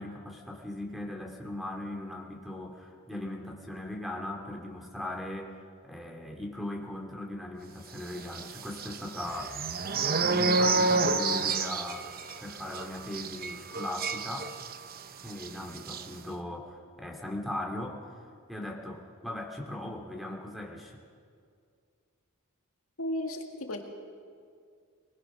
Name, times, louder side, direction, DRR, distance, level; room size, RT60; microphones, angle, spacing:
voice 1, 0.0-5.6 5.8-9.5 10.0-12.1 12.4-14.5 15.2-18.1 18.5-21.0, left 1 dB, ahead, 1 dB, 2.5 m, -39 dB
sound 1, 8.3-15.0 15.3-15.5 15.8-16.0, right 3 dB, 45° right, 0.9 m, -29 dB
voice 2, 23.0-23.8, left 1 dB, 75° left, 3 dB, 2.0 m, -34 dB
22.5 x 20.0 x 6.2 m, 2.2 s
head